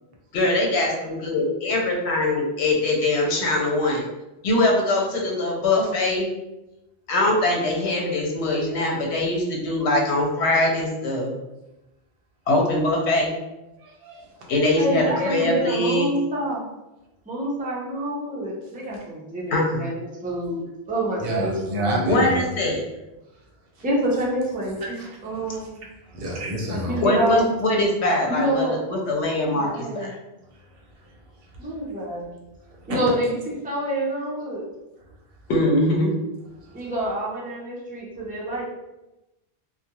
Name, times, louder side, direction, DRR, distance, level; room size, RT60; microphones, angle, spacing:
voice 1, 0.3-4.1 4.4-6.3 7.1-11.3 12.5-13.3 14.5-16.1 19.5-19.9 22.0-22.8 27.0-30.1 35.5-36.1, left 2 dB, 80° left, 0 dB, 0.9 m, -22 dB
voice 2, 13.8-14.3 21.2-22.5 24.8-25.6 26.1-27.1 32.9-33.0, equal, 65° right, 0 dB, 0.7 m, -29 dB
voice 3, 14.8-16.6 17.3-22.3 23.8-25.0 25.2-25.7 26.7-27.5 28.3-28.8 29.5-30.1 31.6-32.3 32.9-34.7 36.7-38.6, right 1 dB, 15° right, -5 dB, 0.3 m, -27 dB
2.3 x 2.1 x 2.8 m, 0.97 s
omnidirectional pair, 1.1 m